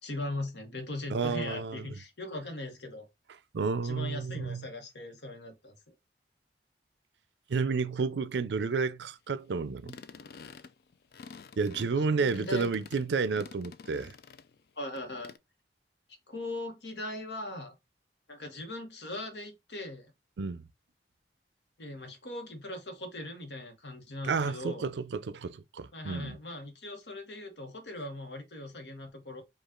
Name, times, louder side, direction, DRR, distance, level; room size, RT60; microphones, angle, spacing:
voice 1, 0.0-3.1 3.8-5.9 12.0-12.7 14.8-15.3 16.3-17.7 18.3-20.1 21.8-24.9 25.9-29.4, left 2 dB, 80° left, 1.2 m, -40 dB
voice 2, 1.1-1.9 3.5-4.7 7.5-10.0 11.6-14.1 20.4-20.6 24.2-26.4, right 4 dB, 85° right, 0.5 m, -31 dB
sound 1, 9.8-14.6 15.0-15.4, left 5 dB, 60° left, 0.4 m, -49 dB
5.0 x 2.4 x 3.7 m
head